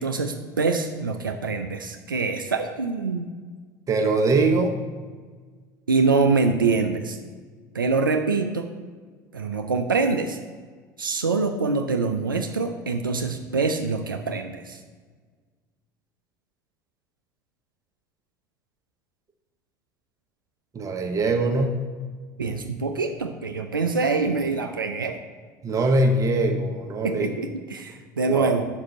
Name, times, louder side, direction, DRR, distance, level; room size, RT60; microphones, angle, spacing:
voice 1, 0.0-3.3 5.9-7.2 7.7-8.7 9.3-10.4 11.0-14.8 22.4-25.2 27.0-28.7, right 4 dB, 90° right, 5 dB, 0.4 m, -25 dB
voice 2, 3.9-4.8 20.7-21.8 25.6-27.3 28.3-28.5, right 2 dB, 30° right, 4 dB, 1.0 m, -22 dB
5.2 x 4.9 x 5.8 m, 1.5 s
figure-of-eight pair, 65°, 11 cm